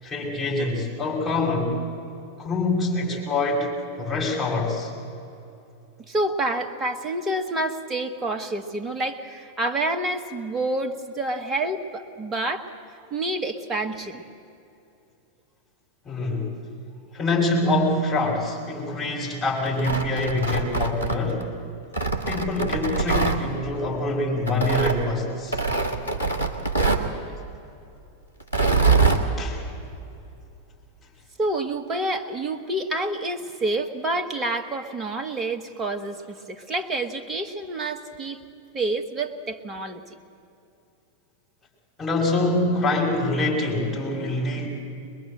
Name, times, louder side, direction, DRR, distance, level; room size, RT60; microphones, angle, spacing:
voice 1, 0.0-1.8 2.4-3.7 4.0-4.9 16.0-16.5 17.1-21.5 22.3-25.6 29.4-29.6 42.0-44.7, left 2 dB, 20° left, -3 dB, 5.8 m, -25 dB
voice 2, 6.1-12.7 13.1-14.2 31.4-38.4 38.7-40.0, right 2 dB, 20° right, 6 dB, 1.5 m, -28 dB
Tearing, 19.7-21.4 21.9-23.4 24.5-25.0 25.5-27.1 28.4-29.2, right 4 dB, 85° left, 1.7 m, -23 dB
23.0 x 21.5 x 7.8 m, 2.7 s
figure-of-eight pair, 90°, 0 cm